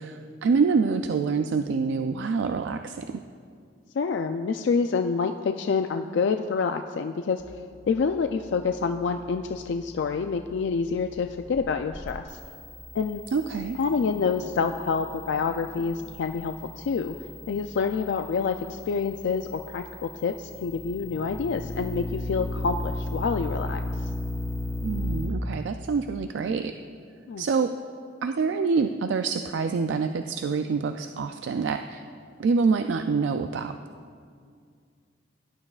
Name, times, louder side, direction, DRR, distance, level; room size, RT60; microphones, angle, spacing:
voice 1, 0.0-3.2 13.3-13.8 24.8-26.7 27.4-27.7 28.2-32.0 32.4-33.8, right 5 dB, 80° right, 7 dB, 0.4 m, -26 dB
voice 2, 4.0-7.5 7.9-12.4 12.9-13.2 13.8-17.2 17.5-24.1 27.3-27.4, left 5 dB, 75° left, 7 dB, 0.4 m, -27 dB
sound 1, 7.4-25.3, left 1 dB, 15° left, 1.9 m, -37 dB
17.5 x 11.0 x 2.4 m, 2.2 s
head